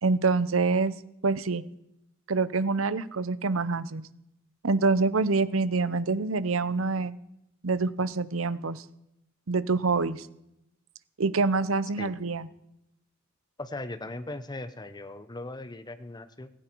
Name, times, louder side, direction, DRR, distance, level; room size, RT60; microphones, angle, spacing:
voice 1, 0.0-1.0 1.2-1.6 2.3-4.0 4.6-7.1 7.6-8.8 9.5-10.3 11.2-12.5, right 4 dB, 85° right, 16 dB, 0.8 m, -26 dB
voice 2, 13.6-16.5, left 2 dB, 20° left, 11 dB, 0.9 m, -38 dB
16.5 x 16.5 x 4.6 m, 0.84 s
head